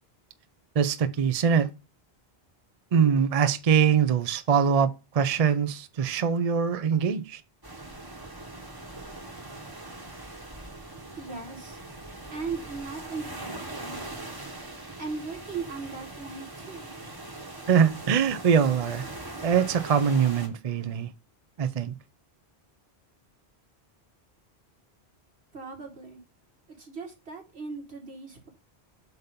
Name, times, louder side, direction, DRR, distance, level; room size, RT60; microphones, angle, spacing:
voice 1, 0.8-1.7 2.9-7.4 17.7-19.0 19.4-21.1 21.6-21.9, right 7 dB, 45° right, 0.5 m, -23 dB
sound 1, 7.6-20.5, right 2 dB, 20° right, 1.3 m, -41 dB
voice 2, 11.2-11.8 12.3-14.4 15.0-17.1 25.5-26.2 26.7-28.5, right 4 dB, 75° right, 2.3 m, -38 dB
7.9 x 2.8 x 5.2 m
omnidirectional pair, 1.1 m